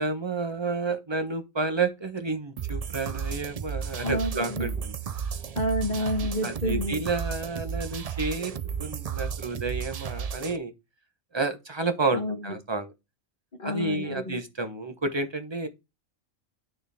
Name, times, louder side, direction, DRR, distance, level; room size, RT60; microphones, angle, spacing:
voice 1, 0.0-4.9 6.4-8.5 8.8-10.7 11.3-12.9 13.6-15.7, right 3 dB, 20° right, 1.0 m, -30 dB
sound 1, 2.6-10.6, right 7 dB, 70° right, 0.3 m, -33 dB
voice 2, 4.0-4.7 5.5-7.0 12.1-12.5 13.6-14.4, equal, 35° left, 1.3 m, -29 dB
9.0 x 6.4 x 3.6 m
omnidirectional pair, 1.4 m